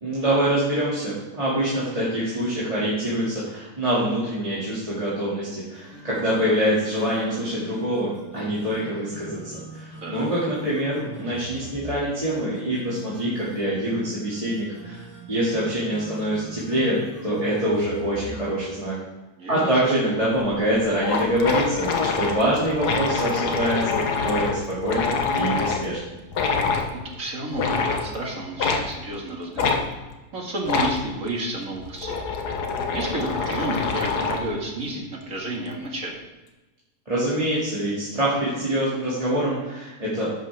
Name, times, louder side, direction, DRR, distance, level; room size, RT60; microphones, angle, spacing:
voice 1, 0.0-18.9 19.5-26.0 37.1-40.4, right 1 dB, 25° right, -9 dB, 2.3 m, -25 dB
sound 1, 5.7-18.6, left 1 dB, 10° left, 3.1 m, -41 dB
voice 2, 19.4-19.8 26.9-29.8 30.3-32.2 32.9-36.2, right 1 dB, 55° right, -1 dB, 2.3 m, -31 dB
sound 2, 20.4-20.5 20.7-20.8 21.0-25.9 26.3-26.9 27.5-28.1 28.6-28.9 29.6-29.8 30.6-31.0 31.7-34.5, left 5 dB, 85° left, 1.6 m, -25 dB
10.5 x 8.6 x 3.4 m, 1.1 s
omnidirectional pair, 1.7 m